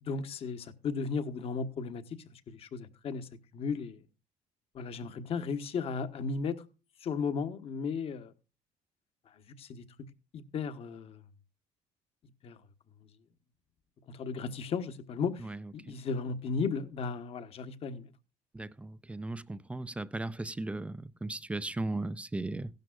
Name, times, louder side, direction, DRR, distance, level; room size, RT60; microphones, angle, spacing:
voice 1, 0.0-3.3 3.5-4.0 4.7-6.6 7.0-8.3 9.6-9.8 10.3-11.2 12.4-12.6 14.1-18.1, left 5 dB, 50° left, 1.2 m, -35 dB
voice 2, 18.6-22.7, right 2 dB, 10° right, 0.4 m, -36 dB
16.5 x 12.0 x 2.4 m
cardioid pair, 130°, 13 cm